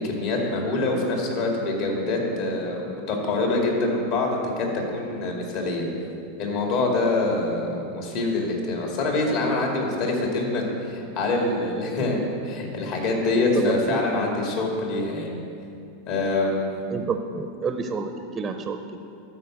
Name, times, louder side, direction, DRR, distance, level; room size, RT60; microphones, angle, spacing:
voice 1, 0.0-4.7 4.9-5.9 6.4-15.4 16.1-16.7, left 2 dB, 55° left, 0 dB, 2.5 m, -25 dB
voice 2, 13.5-14.1 16.9-18.1 18.3-18.8, right 5 dB, 20° right, 7 dB, 0.6 m, -28 dB
12.0 x 5.0 x 7.7 m, 2.6 s
supercardioid pair, 130°, 0 cm